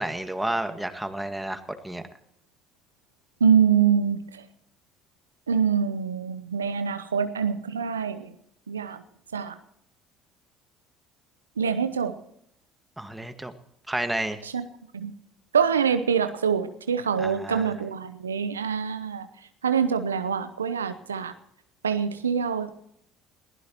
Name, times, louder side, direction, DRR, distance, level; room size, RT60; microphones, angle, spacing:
voice 1, 0.0-2.0 13.0-13.5 13.9-14.4 17.2-17.7, right 1 dB, 5° right, 8 dB, 1.8 m, -31 dB
voice 2, 3.4-4.4 5.5-8.3 8.7-9.0 9.3-9.5 11.6-12.1 14.5-14.6 14.9-15.1 15.5-19.3 19.6-21.3 21.8-22.7, right 7 dB, 90° right, 11 dB, 0.8 m, -25 dB
21.5 x 16.0 x 3.0 m, 0.74 s
hypercardioid pair, 60°, 0 cm